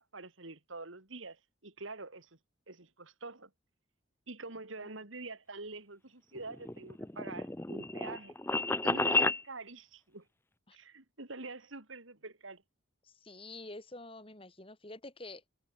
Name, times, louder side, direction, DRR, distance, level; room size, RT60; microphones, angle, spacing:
voice 1, 0.0-2.3 2.7-3.5 4.3-8.4 8.8-10.2 10.7-12.6, right 3 dB, 80° right, 2.9 m, -46 dB
sound 1, 6.3-9.4, left 2 dB, 10° left, 0.8 m, -31 dB
voice 2, 13.0-15.5, left 2 dB, 25° left, 3.3 m, -48 dB
head